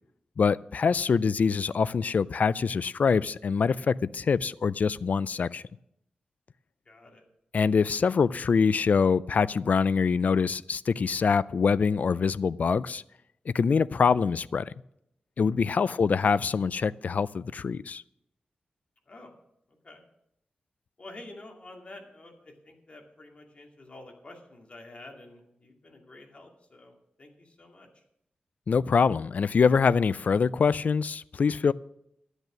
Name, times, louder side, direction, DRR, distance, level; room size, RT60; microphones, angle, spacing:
voice 1, 0.4-5.6 7.5-13.0 13.5-14.7 15.4-18.0 28.7-31.7, left 5 dB, 60° left, 0.3 m, -24 dB
voice 2, 6.9-7.2 19.1-19.3 19.7-20.0 21.0-28.0, left 2 dB, 40° left, 2.3 m, -49 dB
12.5 x 8.1 x 6.2 m
wide cardioid pair, 105°, 3 cm